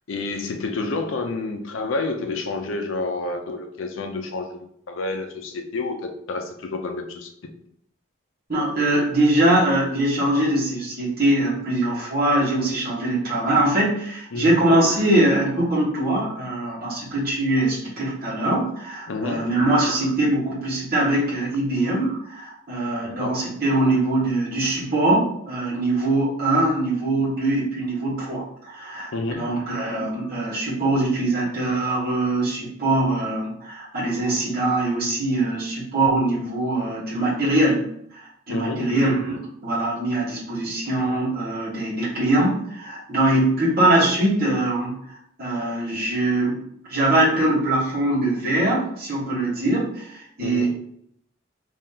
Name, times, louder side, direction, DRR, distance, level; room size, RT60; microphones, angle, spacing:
voice 1, 0.1-7.3 14.3-14.6 19.1-19.5 23.0-23.5 29.1-29.6 38.5-38.9 50.4-50.7, left 3 dB, 85° left, 5 dB, 0.5 m, -29 dB
voice 2, 8.5-37.8 38.2-44.9 45.4-46.6 46.9-50.7, right 1 dB, 50° right, -8 dB, 1.2 m, -22 dB
3.7 x 2.8 x 2.7 m, 0.71 s
head